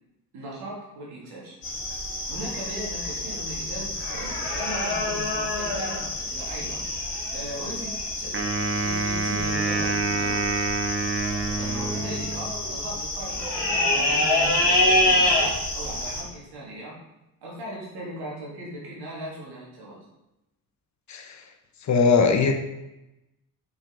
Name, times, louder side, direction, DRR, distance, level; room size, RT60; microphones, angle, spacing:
voice 1, 0.3-1.6 2.3-6.8 7.3-8.4 8.8-10.6 11.6-15.4 15.7-17.0 17.4-20.0, right 1 dB, 60° right, -4 dB, 2.7 m, -38 dB
sound 1, 1.6-16.2, left 1 dB, 80° left, 2.0 m, -27 dB
Wind instrument woodwind instrument, 8.3-12.6, right 3 dB, 30° right, 1.1 m, -27 dB
voice 2, 21.1-21.4 21.9-22.5, left 5 dB, 40° left, 4 dB, 1.0 m, -20 dB
6.7 x 5.7 x 3.9 m, 0.94 s
figure-of-eight pair, 45°, 45 cm